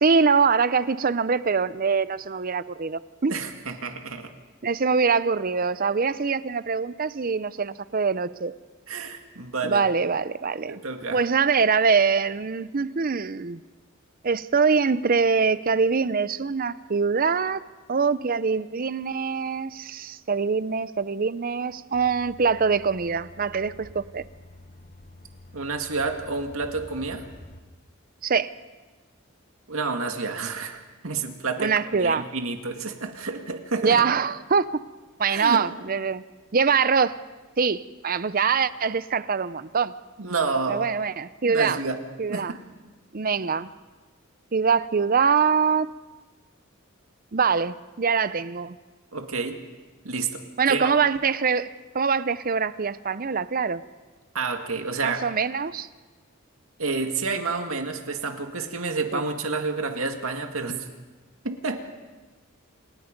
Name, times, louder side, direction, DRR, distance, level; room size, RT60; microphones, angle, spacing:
voice 1, 0.0-3.3 4.6-8.5 9.6-10.8 11.1-13.6 14.2-24.2 28.2-28.5 31.6-32.3 33.8-34.7 35.2-36.2 36.5-37.2 37.6-39.9 40.7-41.8 42.2-42.5 43.1-43.7 44.5-45.9 47.3-48.8 50.6-53.8 55.0-55.9 59.1-59.2, right 5 dB, 45° right, 0.6 m, -23 dB
voice 2, 3.3-4.3 8.9-9.8 10.7-11.2 25.5-27.3 29.7-34.0 35.3-35.6 40.2-40.9 41.4-42.0 42.3-42.6 49.1-49.6 50.0-50.9 54.3-55.2 56.8-60.9 61.4-61.8, right 4 dB, 80° right, 2.1 m, -29 dB
sound 1, 21.9-27.6, left 1 dB, 40° left, 1.3 m, -47 dB
28.0 x 17.5 x 5.3 m
head